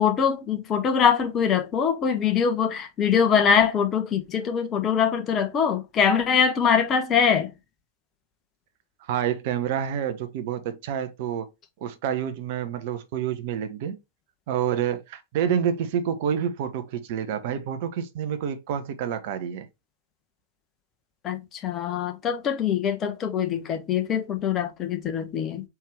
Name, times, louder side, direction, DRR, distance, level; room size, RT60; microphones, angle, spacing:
voice 1, 0.0-7.5 21.2-25.6, left 7 dB, 30° left, 1.1 m, -23 dB
voice 2, 9.1-11.5 11.8-14.0 14.5-19.7, right 8 dB, 50° right, 0.7 m, -28 dB
4.5 x 3.5 x 3.3 m
figure-of-eight pair, 90°, 0 cm